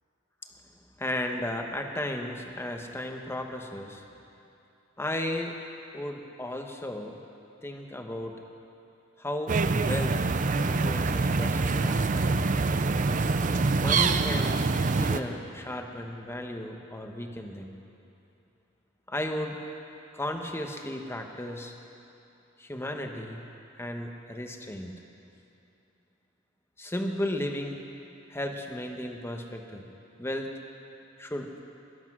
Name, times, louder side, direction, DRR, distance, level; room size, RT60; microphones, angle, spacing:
voice 1, 1.0-4.0 5.0-5.5 5.9-7.2 7.6-8.3 9.2-10.2 10.6-12.3 13.7-14.6 14.9-17.7 19.1-19.6 20.1-21.7 22.6-23.4 23.8-24.9 26.8-27.8 28.3-29.9 30.2-30.5 31.2-31.6, left 1 dB, 15° left, 3 dB, 1.1 m, -34 dB
sound 1, 9.5-15.2, right 3 dB, 40° right, 0.5 m, -25 dB
19.5 x 12.0 x 6.2 m, 2.9 s
head